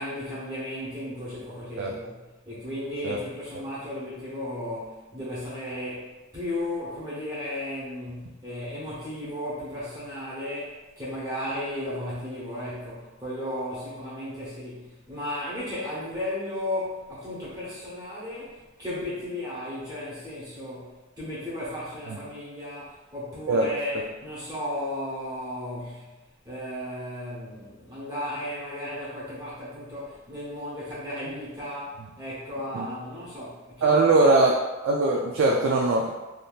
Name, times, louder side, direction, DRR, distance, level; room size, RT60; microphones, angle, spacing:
voice 1, 0.0-2.2 2.5-26.1 26.4-34.0, left 1 dB, 20° right, -10 dB, 0.9 m, -35 dB
voice 2, 33.8-34.5 34.8-36.1, right 2 dB, 65° right, -1 dB, 0.3 m, -21 dB
3.5 x 2.6 x 2.4 m, 1.1 s
head